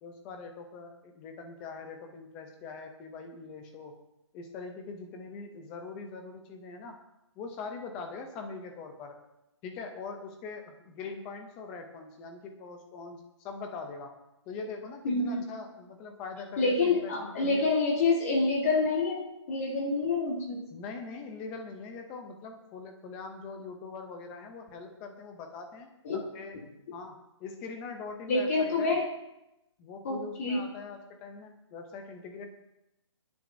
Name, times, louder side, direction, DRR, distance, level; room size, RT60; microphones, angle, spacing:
voice 1, 0.0-3.9 4.3-7.0 7.4-9.2 9.6-14.1 14.5-17.7 20.7-25.9 26.3-26.6 26.9-29.0 29.8-32.5, left 4 dB, 5° left, 4 dB, 0.4 m, -42 dB
voice 2, 15.0-15.4 16.6-20.6 26.0-26.2 28.3-29.1 30.0-30.6, left 3 dB, 30° left, 0 dB, 1.6 m, -27 dB
23.0 x 10.5 x 2.6 m, 0.91 s
hypercardioid pair, 175°, 15 cm